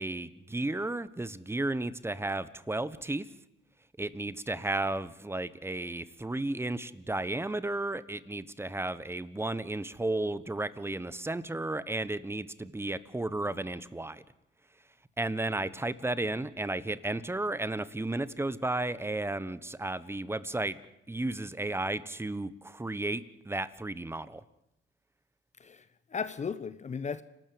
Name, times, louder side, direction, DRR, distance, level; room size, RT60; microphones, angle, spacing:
voice 1, 0.0-3.3 4.0-14.2 15.2-20.8 21.1-24.4, right 2 dB, 10° right, 1.1 m, -33 dB
voice 2, 25.6-27.2, left 6 dB, 35° left, 0.9 m, -36 dB
29.0 x 12.5 x 7.9 m
cardioid pair, 90°, 20 cm